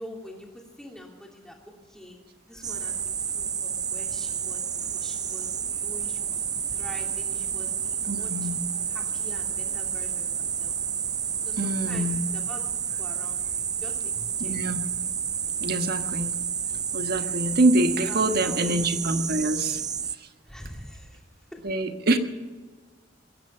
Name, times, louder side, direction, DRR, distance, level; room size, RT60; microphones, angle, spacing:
voice 1, 0.0-2.2 2.5-8.5 8.9-10.7 11.4-12.7 13.0-14.6 18.1-19.1 20.4-21.2 21.5-21.6, equal, 5° left, -1 dB, 2.9 m, -45 dB
sound 1, 2.6-20.2, right 8 dB, 20° right, 0.4 m, -30 dB
voice 2, 8.1-8.6 11.6-12.2 14.4-14.8 15.6-16.4 16.9-19.8 20.2-20.3 21.6-22.2, right 2 dB, 55° right, 7 dB, 1.3 m, -25 dB
21.5 x 10.5 x 5.6 m, 1.4 s
head